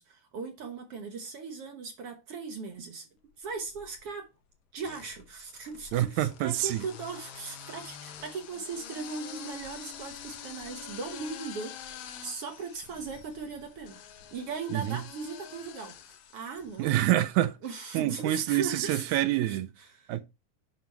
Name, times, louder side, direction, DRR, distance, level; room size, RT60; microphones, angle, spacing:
voice 1, 0.0-3.1 3.4-4.3 4.7-14.0 14.3-17.0 17.6-20.1, right 4 dB, 60° right, 1.8 m, -39 dB
sound 1, 3.4-4.1 4.8-17.1, left 8 dB, 70° left, 2.2 m, -46 dB
voice 2, 5.9-6.8 14.7-15.0 16.8-17.6 17.9-19.7 20.1-20.2, right 14 dB, 80° right, 2.0 m, -27 dB
9.5 x 5.9 x 2.9 m
omnidirectional pair, 3.5 m